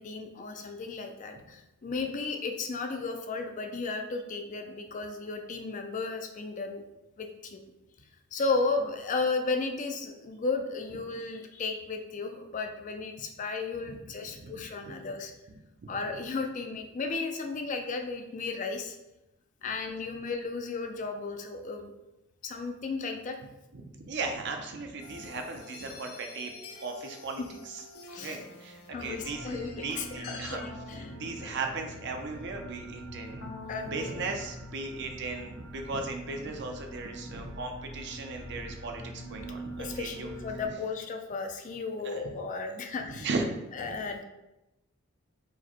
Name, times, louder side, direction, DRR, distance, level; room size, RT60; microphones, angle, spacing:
voice 1, 0.0-6.8 7.2-7.6 8.3-15.3 15.9-19.0 19.6-21.9 22.4-23.4 28.1-28.4 28.9-31.1 33.7-33.9 39.8-43.3 43.8-44.2, left 4 dB, 35° left, 5 dB, 0.4 m, -34 dB
voice 2, 14.4-14.9 15.5-16.0 23.7-26.5 26.8-27.8 28.2-30.6 31.0-33.4 33.8-40.3 42.0-42.3 43.1-44.0, right 3 dB, 50° right, 4 dB, 0.6 m, -37 dB
sound 1, 25.0-34.3, left 3 dB, 75° left, 0.6 m, -48 dB
sound 2, 28.9-40.7, right 1 dB, 85° right, 0.9 m, -44 dB
4.8 x 2.1 x 4.3 m, 0.94 s
head